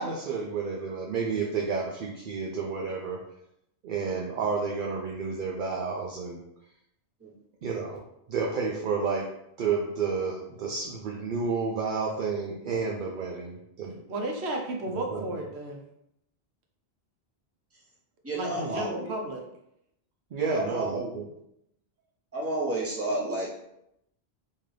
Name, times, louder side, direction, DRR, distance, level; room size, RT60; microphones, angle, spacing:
voice 1, 0.0-3.2 3.8-6.4 7.6-9.2 9.6-14.0 14.9-15.3 18.6-18.8 20.3-21.3, right 5 dB, 60° right, -1 dB, 0.6 m, -31 dB
voice 2, 14.1-15.8 18.3-19.4, right 1 dB, 80° right, 1 dB, 0.9 m, -33 dB
voice 3, 18.2-19.1 20.4-21.1 22.3-23.5, right 2 dB, 15° right, -5 dB, 0.8 m, -31 dB
3.7 x 2.7 x 3.2 m, 0.80 s
omnidirectional pair, 1.1 m